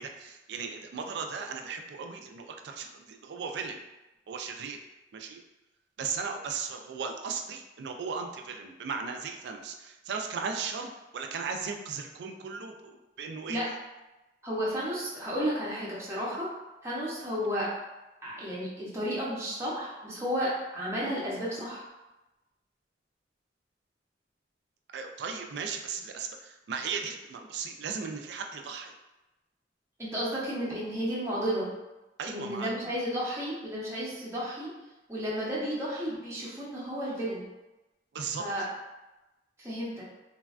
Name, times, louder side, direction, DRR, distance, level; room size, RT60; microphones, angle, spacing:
voice 1, 0.0-3.8 4.3-4.8 5.1-5.4 6.0-13.6 24.9-28.9 32.2-32.7 38.1-38.4, right 5 dB, 65° right, 4 dB, 0.3 m, -36 dB
voice 2, 14.4-16.5 16.8-17.7 18.2-21.8 30.0-31.7 32.3-34.7 35.1-37.4 38.4-38.7 39.6-40.0, equal, 15° right, -7 dB, 0.6 m, -32 dB
3.3 x 2.2 x 2.3 m, 1.0 s
head